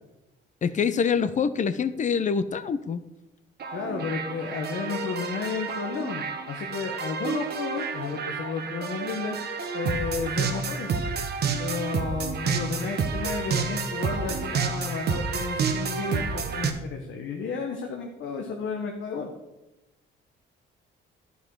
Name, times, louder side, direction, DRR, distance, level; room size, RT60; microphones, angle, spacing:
voice 1, 0.6-3.0, left 6 dB, 40° left, 14 dB, 0.6 m, -25 dB
sound 1, 3.6-16.7, right 5 dB, 55° right, 1.0 m, -30 dB
voice 2, 3.7-9.4 9.7-10.9 11.6-19.3, left 5 dB, 70° left, 2 dB, 1.1 m, -32 dB
11.0 x 5.5 x 4.6 m, 0.97 s
cardioid pair, 90°, 20 cm